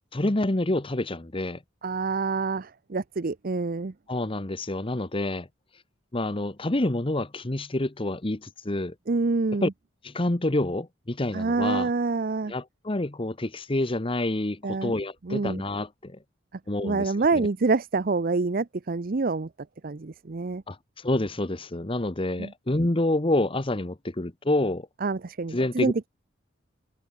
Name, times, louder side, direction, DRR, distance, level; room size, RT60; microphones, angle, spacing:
voice 1, 0.1-1.6 4.1-5.5 6.1-8.9 9.6-9.7 10.0-11.9 12.5-16.2 16.7-17.5 20.7-24.9 25.5-26.1, left 1 dB, 25° left, 1.1 m, -28 dB
voice 2, 1.8-3.9 9.1-9.7 11.3-12.5 14.6-14.9 15.3-15.6 16.8-19.5 19.8-20.6 22.4-22.5 25.0-26.1, right 3 dB, 45° right, 0.6 m, -26 dB
head